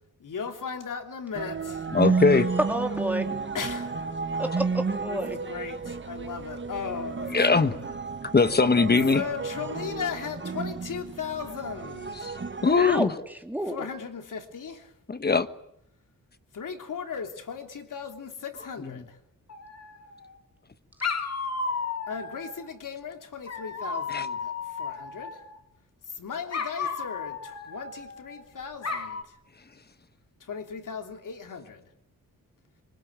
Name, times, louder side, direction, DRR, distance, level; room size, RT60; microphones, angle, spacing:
voice 1, 0.2-1.9 3.5-3.8 5.1-7.8 9.1-12.3 13.7-14.9 16.5-19.2 22.1-25.4 26.1-29.2 30.4-31.8, left 6 dB, 70° left, 3.2 m, -37 dB
sound 1, 1.3-13.0, right 4 dB, 35° right, 1.6 m, -32 dB
voice 2, 1.9-2.5 7.3-7.7 8.3-9.2 12.2-12.3 12.6-13.1 15.1-15.5 18.8-18.9 24.1-24.3, left 4 dB, 30° left, 1.3 m, -21 dB
voice 3, 2.7-3.2 4.4-5.4 12.8-13.1 13.4-13.8, right 1 dB, 5° right, 3.0 m, -30 dB
Dog, 19.5-20.3 21.0-22.7 23.5-25.6 26.5-28.4 28.8-29.2, left 5 dB, 50° left, 2.5 m, -34 dB
26.0 x 24.5 x 9.0 m
wide cardioid pair, 130°, 33 cm